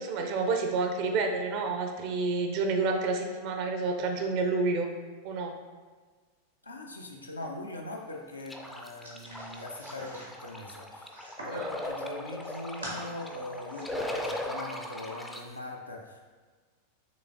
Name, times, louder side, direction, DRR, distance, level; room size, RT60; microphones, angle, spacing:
voice 1, 0.0-4.9 5.2-5.5 11.5-11.7, right 3 dB, 45° right, 4 dB, 0.6 m, -29 dB
voice 2, 6.6-11.1 11.4-16.2, left 1 dB, 80° left, 1 dB, 0.6 m, -41 dB
sound 1, 8.5-15.4, left 1 dB, 5° left, 0.4 m, -38 dB
sound 2, 9.0-11.6 12.1-13.0 13.4-13.8, right 1 dB, 80° right, 1.3 m, -45 dB
6.0 x 3.1 x 2.5 m, 1.4 s
figure-of-eight pair, 90°, 0 cm